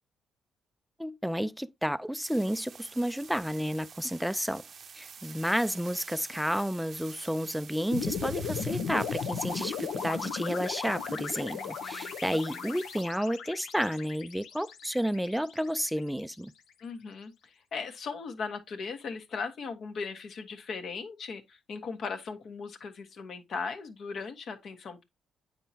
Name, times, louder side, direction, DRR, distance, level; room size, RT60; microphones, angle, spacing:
voice 1, 1.0-4.6 4.9-16.5, equal, ahead, 0.4 m, -31 dB
sound 1, 2.2-13.0, right 6 dB, 50° right, 0.6 m, -48 dB
sound 2, 7.9-16.2, left 6 dB, 85° left, 1.0 m, -36 dB
voice 2, 11.5-12.6 16.8-25.0, left 5 dB, 60° left, 1.3 m, -38 dB
8.8 x 4.5 x 2.7 m
cardioid pair, 90°, 0 cm